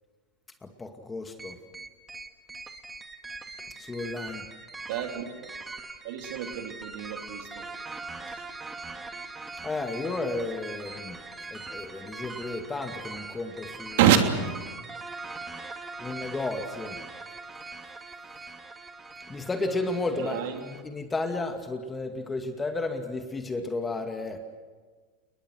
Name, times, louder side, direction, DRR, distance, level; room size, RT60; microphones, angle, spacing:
voice 1, 0.6-1.6 3.8-4.5 9.6-11.2 11.5-14.0 16.0-17.0 19.3-24.4, left 3 dB, 15° left, 6 dB, 2.2 m, -33 dB
sound 1, 1.4-20.8, right 3 dB, 15° right, 2.1 m, -41 dB
voice 2, 4.9-5.5 6.0-7.7 8.3-8.4 14.0-14.5 20.1-20.6, right 9 dB, 65° right, 5 dB, 3.1 m, -26 dB
29.5 x 21.0 x 6.4 m, 1.5 s
hypercardioid pair, 100°, 0 cm